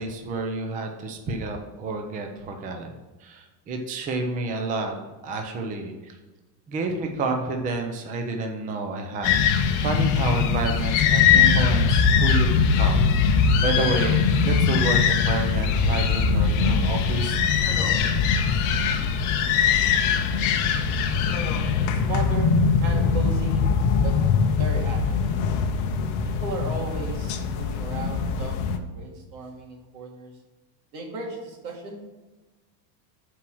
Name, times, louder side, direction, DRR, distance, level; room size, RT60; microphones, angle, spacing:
voice 1, 0.0-2.9 3.2-4.9 5.2-6.2 6.7-9.4 9.8-17.4, right 3 dB, 15° right, 3 dB, 0.5 m, -29 dB
sound 1, 9.2-28.8, left 6 dB, 40° left, 0.7 m, -21 dB
voice 2, 21.8-23.7 24.0-24.2 24.4-25.2 26.2-30.3 30.9-32.1, right 3 dB, 90° right, 0 dB, 2.4 m, -35 dB
7.3 x 4.6 x 6.1 m, 1.2 s
cardioid pair, 170°, 50 cm